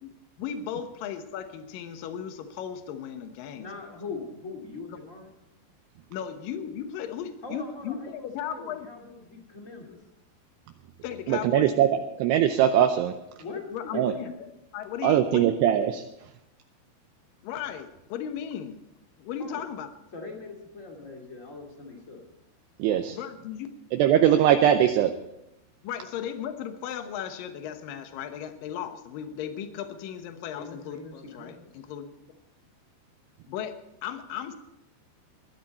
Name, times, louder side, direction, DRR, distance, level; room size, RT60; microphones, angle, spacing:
voice 1, 0.0-4.0 6.1-8.9 11.0-11.9 13.7-15.5 17.4-18.8 19.2-19.9 23.1-23.7 25.8-32.1 33.5-34.6, left 9 dB, 75° left, 7 dB, 2.1 m, -36 dB
voice 2, 3.6-5.3 7.4-10.0 13.4-14.3 19.4-19.6 20.1-22.2 30.5-31.7, left 4 dB, 25° left, 0 dB, 1.7 m, -41 dB
voice 3, 11.3-13.2 13.9-14.1 15.0-16.0 22.8-23.2 23.9-25.1, right 10 dB, 80° right, 7 dB, 2.5 m, -21 dB
20.5 x 12.0 x 4.3 m, 0.90 s
omnidirectional pair, 5.5 m